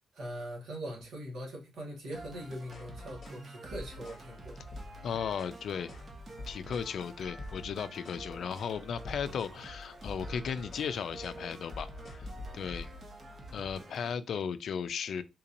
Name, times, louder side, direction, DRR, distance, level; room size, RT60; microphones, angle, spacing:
voice 1, 0.1-4.6, equal, 85° right, 1.4 m, -41 dB
sound 1, 2.1-14.1, right 1 dB, 40° right, 0.8 m, -48 dB
sound 2, 2.6-2.9 3.2-3.4 3.7-4.3 4.6-5.6 5.9-6.1 6.4-6.9 7.3-8.3 8.5-8.8 9.1-9.6 9.9-10.9 11.2-11.4 11.7-13.2, left 2 dB, 50° left, 0.8 m, -46 dB
voice 2, 5.0-5.9 6.5-11.9 12.1-12.3 12.5-12.9 13.5-15.2, left 7 dB, 70° left, 0.3 m, -35 dB
3.8 x 2.8 x 2.5 m
wide cardioid pair, 135°, 0 cm